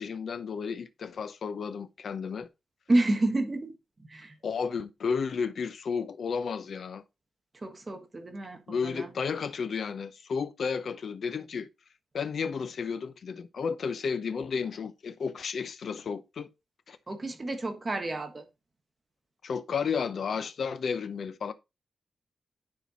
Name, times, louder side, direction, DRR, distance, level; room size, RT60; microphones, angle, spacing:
voice 1, 0.0-2.5 4.4-7.0 8.7-11.7 12.1-16.5 16.9-17.0 19.4-21.5, left 6 dB, 55° left, 0.7 m, -32 dB
voice 2, 2.9-3.8 4.0-4.3 7.6-9.1 17.1-18.4, right 2 dB, 25° right, 1.3 m, -29 dB
10.5 x 4.5 x 4.2 m
wide cardioid pair, 175°, 0 cm